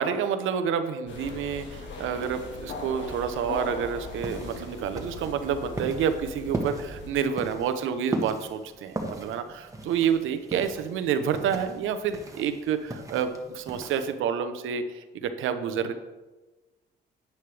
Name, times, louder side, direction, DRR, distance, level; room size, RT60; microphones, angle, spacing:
voice 1, 0.0-15.9, right 7 dB, 85° right, 9 dB, 0.9 m, -29 dB
sound 1, 1.1-7.1, left 3 dB, 70° left, 1.8 m, -39 dB
sound 2, 4.0-14.1, right 2 dB, 15° right, 1.5 m, -38 dB
10.5 x 9.4 x 3.4 m, 1.1 s
cardioid pair, 90°, 20 cm